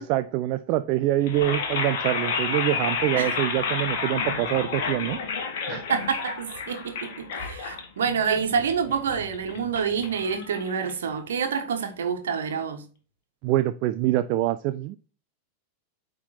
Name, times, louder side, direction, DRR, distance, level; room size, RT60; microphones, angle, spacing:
voice 1, 0.0-5.2 5.7-5.8 13.4-15.0, right 14 dB, 45° right, 0.4 m, -25 dB
sound 1, 1.2-11.3, left 5 dB, 50° left, 1.5 m, -31 dB
voice 2, 5.9-12.8, right 6 dB, 65° right, 1.4 m, -27 dB
8.6 x 3.6 x 4.2 m
figure-of-eight pair, 90°, 0 cm